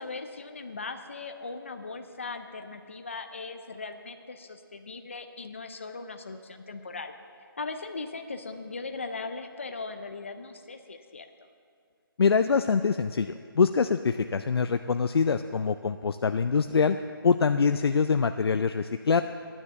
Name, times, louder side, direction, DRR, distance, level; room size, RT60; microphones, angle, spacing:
voice 1, 0.0-7.1 7.6-11.3, left 3 dB, 30° left, 7 dB, 0.5 m, -39 dB
voice 2, 12.2-17.0 17.2-19.2, left 5 dB, 85° left, 9 dB, 0.4 m, -24 dB
9.8 x 9.4 x 7.4 m, 2.2 s
hypercardioid pair, 180°, 13 cm